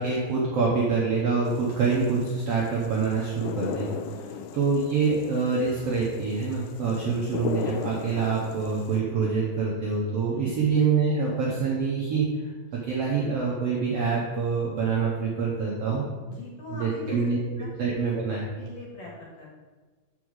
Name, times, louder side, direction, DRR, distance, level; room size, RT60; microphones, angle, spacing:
voice 1, 0.0-4.0 4.5-12.3 12.7-16.0 16.8-17.4 17.8-18.5, right 5 dB, 70° right, -4 dB, 1.5 m, -26 dB
sound 1, 1.5-9.0, left 8 dB, 90° left, 2.4 m, -37 dB
voice 2, 4.1-4.5 6.9-7.1 10.3-10.6 16.3-17.7 18.6-19.5, left 3 dB, 55° left, -4 dB, 2.5 m, -42 dB
6.1 x 5.6 x 6.4 m, 1.4 s
omnidirectional pair, 4.2 m